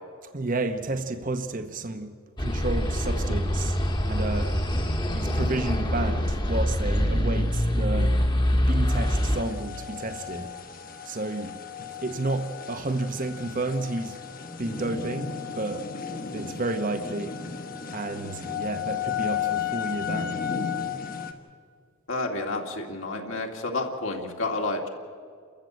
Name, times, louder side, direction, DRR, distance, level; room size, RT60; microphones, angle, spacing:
voice 1, 0.3-2.1 2.4-3.8 4.1-4.6 5.1-8.1 8.5-10.5 11.0-14.2 14.6-15.9 16.3-17.4 17.9-20.4, right 2 dB, 40° right, 0.9 m, -31 dB
sound 1, 2.4-9.4, equal, 20° left, 1.4 m, -25 dB
sound 2, 8.9-21.3, left 7 dB, 40° left, 1.4 m, -34 dB
voice 2, 22.1-24.9, left 2 dB, 65° left, 2.2 m, -30 dB
29.5 x 14.0 x 7.9 m
head